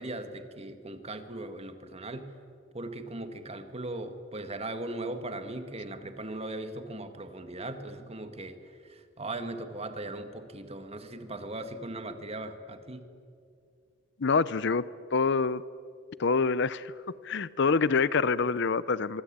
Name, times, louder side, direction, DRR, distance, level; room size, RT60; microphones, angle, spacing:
voice 1, 0.0-2.3 2.7-13.0, right 2 dB, 30° right, 8 dB, 1.9 m, -39 dB
voice 2, 14.2-14.8 15.1-15.6 16.2-16.9 17.2-19.2, left 4 dB, 60° left, 17 dB, 0.7 m, -26 dB
24.5 x 24.0 x 8.9 m, 2.4 s
head